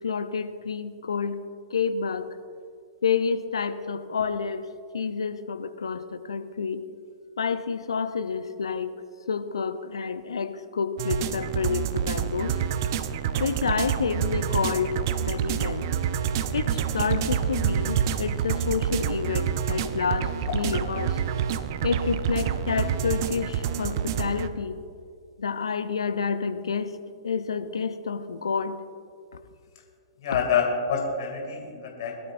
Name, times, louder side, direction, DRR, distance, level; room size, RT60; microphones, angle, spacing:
voice 1, 0.0-1.4 1.7-2.3 3.0-6.8 7.4-8.9 9.3-12.6 13.4-15.9 16.5-21.2 21.8-24.8 25.4-27.0 27.2-28.8, left 5 dB, 75° left, 10 dB, 0.8 m, -29 dB
sound 1, 11.0-24.5, right 8 dB, 50° right, 0.7 m, -27 dB
voice 2, 30.2-32.3, left 6 dB, 55° left, 1 dB, 2.7 m, -27 dB
22.0 x 12.0 x 2.7 m, 2.3 s
figure-of-eight pair, 110°, 3 cm